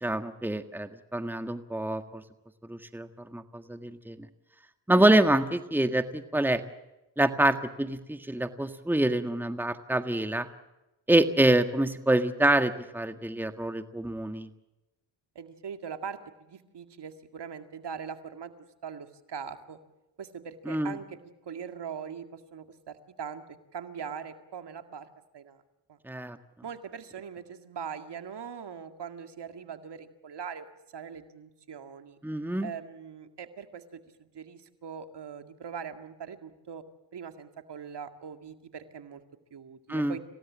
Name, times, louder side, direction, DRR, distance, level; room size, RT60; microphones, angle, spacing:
voice 1, 0.0-2.2 2.7-4.2 4.9-6.6 7.2-10.5 11.1-14.5 20.6-21.0 26.0-26.4 32.2-32.7 39.9-40.2, right 1 dB, 5° right, 8 dB, 1.7 m, -26 dB
voice 2, 15.4-18.5 18.8-19.8 20.2-23.4 23.7-25.1 25.3-25.6 25.9-26.0 26.6-30.7 30.9-32.2 32.6-36.8 37.1-39.2 39.5-40.2, right 7 dB, 60° right, 7 dB, 2.2 m, -41 dB
27.5 x 17.5 x 7.4 m, 1.0 s
supercardioid pair, 60°, 47 cm